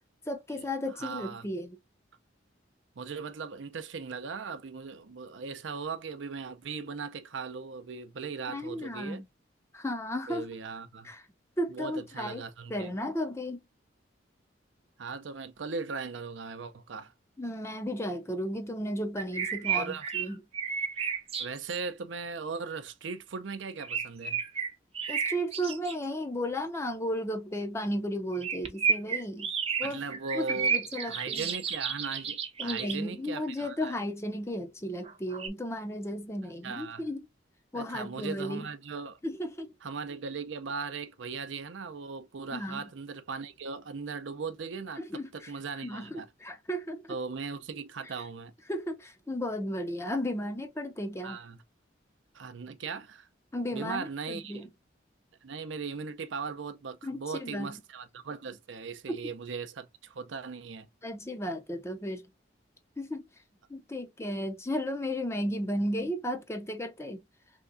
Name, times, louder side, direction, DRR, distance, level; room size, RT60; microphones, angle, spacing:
voice 1, 0.3-1.8 8.5-9.2 9.7-10.5 11.0-11.2 11.6-12.4 12.7-13.6 17.4-20.4 25.1-29.5 29.8-30.0 30.3-31.5 32.6-37.2 37.7-38.7 39.2-39.7 42.5-42.9 45.0-45.5 45.8-47.2 48.7-51.4 53.5-54.7 57.0-57.8 59.1-59.2 61.0-62.3 63.0-63.2 63.7-67.2, equal, 15° left, 0.5 m, -34 dB
voice 2, 0.9-1.5 3.0-9.2 10.3-11.1 11.7-12.9 15.0-17.1 19.7-20.1 21.4-24.4 29.8-30.7 31.1-33.9 36.6-37.0 37.7-39.2 39.8-46.3 47.1-48.5 51.2-51.6 52.3-53.3 53.7-54.6 55.4-60.9, right 5 dB, 80° right, 0.5 m, -38 dB
sound 1, 19.2-21.8 23.8-25.9 28.3-33.0 35.0-35.5, right 6 dB, 30° right, 0.6 m, -32 dB
3.4 x 2.9 x 2.5 m
head